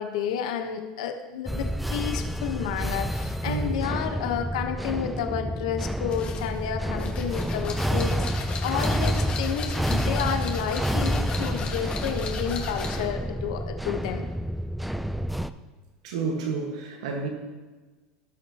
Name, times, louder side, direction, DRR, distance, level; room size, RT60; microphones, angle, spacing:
voice 1, 0.0-14.2, left 8 dB, 85° left, 6 dB, 1.0 m, -31 dB
sound 1, 1.5-15.5, equal, ahead, 0.3 m, -29 dB
voice 2, 3.4-3.8 16.0-17.3, right 4 dB, 90° right, 2 dB, 1.5 m, -30 dB
sound 2, 6.1-13.1, left 5 dB, 35° left, 1.7 m, -37 dB
17.5 x 6.1 x 2.9 m, 1.3 s
supercardioid pair, 135°, 3 cm